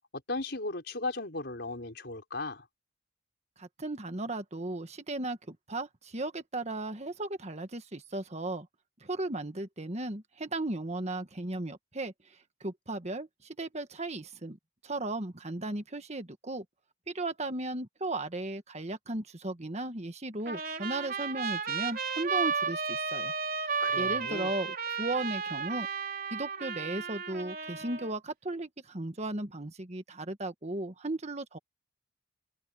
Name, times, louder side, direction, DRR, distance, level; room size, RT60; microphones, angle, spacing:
voice 1, 0.3-2.6 23.8-24.5, left 2 dB, 60° left, 4.9 m, -36 dB
voice 2, 3.6-8.7 9.0-12.1 12.6-14.6 14.8-16.6 17.1-23.3 23.6-25.9 26.3-31.6, right 2 dB, 35° right, 1.5 m, -36 dB
Trumpet, 20.5-28.1, right 5 dB, 50° right, 3.7 m, -33 dB
head